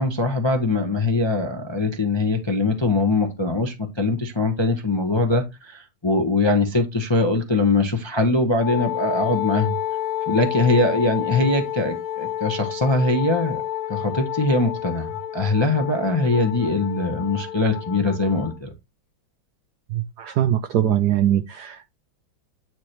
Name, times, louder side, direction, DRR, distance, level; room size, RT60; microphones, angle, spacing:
voice 1, 0.0-9.8 10.3-13.6 13.9-18.7, left 2 dB, 30° left, 0.5 m, -22 dB
Wind instrument woodwind instrument, 8.6-18.6, left 12 dB, 80° left, 0.8 m, -30 dB
voice 2, 19.9-21.8, right 11 dB, 70° right, 0.9 m, -22 dB
9.3 x 3.2 x 4.4 m
omnidirectional pair, 2.2 m